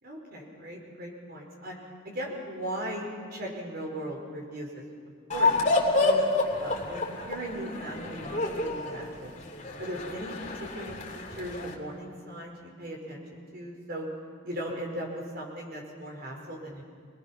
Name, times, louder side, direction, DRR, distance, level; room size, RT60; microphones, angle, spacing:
voice 1, 0.0-5.6 6.0-9.3 9.8-10.3 10.6-14.1 14.4-16.8, right 1 dB, 50° right, 0 dB, 4.9 m, -38 dB
sound 1, 5.3-11.7, left 2 dB, 35° left, 2.9 m, -28 dB
27.5 x 20.0 x 6.0 m, 2.2 s
head